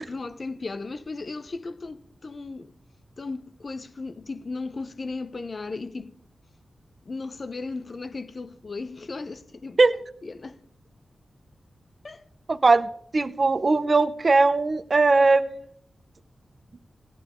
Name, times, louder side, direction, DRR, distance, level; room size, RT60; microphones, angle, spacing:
voice 1, 0.0-2.7 3.2-6.1 7.1-9.8 10.2-10.6 12.0-12.2, left 3 dB, 40° left, 0.7 m, -36 dB
voice 2, 12.5-15.5, right 3 dB, 40° right, 0.8 m, -20 dB
18.0 x 11.0 x 3.7 m
wide cardioid pair, 140°, 0 cm